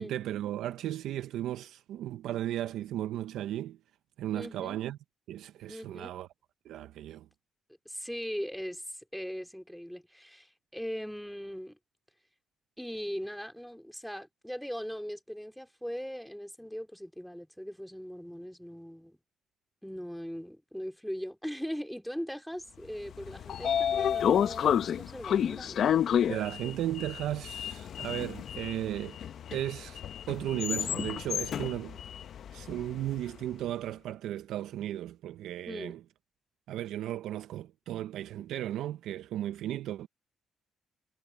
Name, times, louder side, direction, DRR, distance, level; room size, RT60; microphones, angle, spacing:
voice 1, 0.0-3.8 4.2-5.0 5.3-6.3 6.7-7.3 26.3-29.2 29.5-32.0 32.5-36.0 36.7-40.1, right 12 dB, 85° right, 0.5 m, -35 dB
voice 2, 4.3-4.8 5.7-6.1 7.8-11.8 12.8-19.2 19.8-25.9 35.7-35.9, equal, ahead, 2.9 m, -40 dB
Sliding door, 23.1-33.2, left 9 dB, 65° left, 0.7 m, -30 dB
cardioid pair, 90°, 0 cm